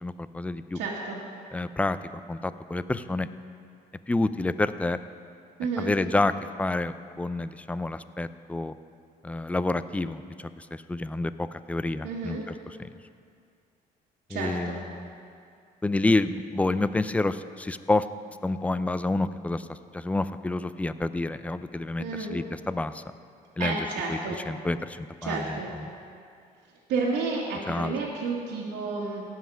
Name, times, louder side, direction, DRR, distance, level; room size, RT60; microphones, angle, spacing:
voice 1, 0.0-0.8 1.5-2.0 2.3-3.3 4.1-5.0 5.8-6.3 6.6-8.7 9.2-12.4 12.8-12.9 14.3-15.1 15.8-18.1 18.4-23.0 23.6-23.8 24.1-24.2 24.5-25.6 25.9-26.0 27.7-27.9, left 2 dB, 10° left, 13 dB, 0.3 m, -28 dB
voice 2, 0.7-1.2 5.6-5.9 12.0-12.4 14.3-14.8 22.0-22.4 23.6-24.4 25.2-25.7 26.9-29.2, right 4 dB, 85° right, -7 dB, 1.8 m, -31 dB
17.0 x 5.7 x 6.2 m, 2.3 s
cardioid pair, 110°, 17 cm